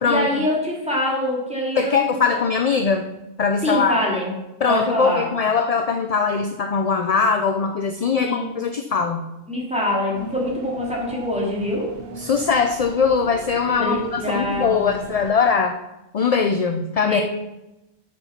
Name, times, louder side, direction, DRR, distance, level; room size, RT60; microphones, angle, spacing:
voice 1, 0.0-2.2 3.6-4.3 4.7-5.3 8.2-8.5 9.5-11.9 13.8-15.0 17.1-17.2, equal, 5° right, -4 dB, 2.8 m, -24 dB
voice 2, 1.8-3.1 3.4-4.0 4.6-9.3 12.2-15.8 16.1-17.2, left 5 dB, 45° left, 6 dB, 0.6 m, -21 dB
sound 1, 10.1-15.3, right 3 dB, 60° right, 1.1 m, -39 dB
7.9 x 7.0 x 5.8 m, 0.95 s
omnidirectional pair, 1.1 m